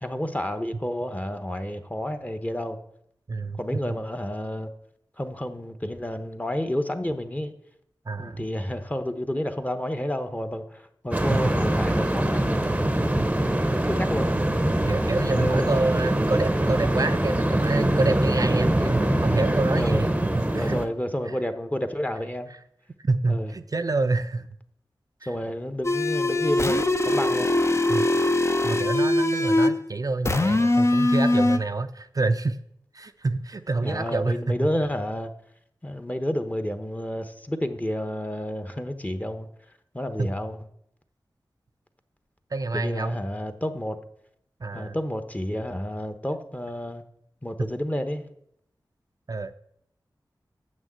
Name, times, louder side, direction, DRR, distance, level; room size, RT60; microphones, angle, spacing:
voice 1, 0.0-2.8 3.6-4.7 5.2-7.5 8.2-13.0 13.9-14.6 15.3-15.8 19.8-20.0 20.5-22.5 23.3-23.5 25.3-27.5 33.8-35.3 35.8-39.5 39.9-40.6 42.7-44.0 44.7-47.0 47.4-48.2, left 1 dB, 20° left, 1.0 m, -30 dB
voice 2, 3.3-3.8 8.1-8.4 11.3-11.4 14.9-20.1 20.3-20.8 21.3-21.4 23.0-24.5 25.2-25.3 27.9-28.0 28.6-32.6 32.9-34.6 40.2-40.3 42.5-43.2 44.6-45.0 49.3-49.5, right 3 dB, 45° right, 0.4 m, -27 dB
sound 1, 11.1-20.9, right 1 dB, 15° right, 0.8 m, -23 dB
sound 2, 25.8-29.8 30.3-31.6, left 1 dB, 35° left, 0.7 m, -22 dB
7.3 x 6.3 x 7.4 m
wide cardioid pair, 50°, 8 cm